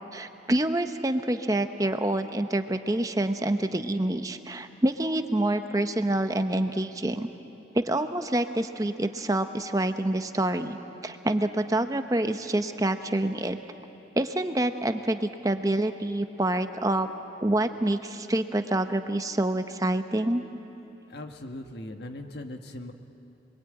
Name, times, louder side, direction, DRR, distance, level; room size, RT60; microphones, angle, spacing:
voice 1, 0.1-7.3 7.7-13.6 14.2-17.1 17.4-20.4, right 1 dB, 20° right, 8 dB, 0.8 m, -27 dB
voice 2, 21.1-22.9, left 1 dB, 65° left, 5 dB, 1.5 m, -39 dB
27.0 x 22.0 x 9.0 m, 2.9 s
head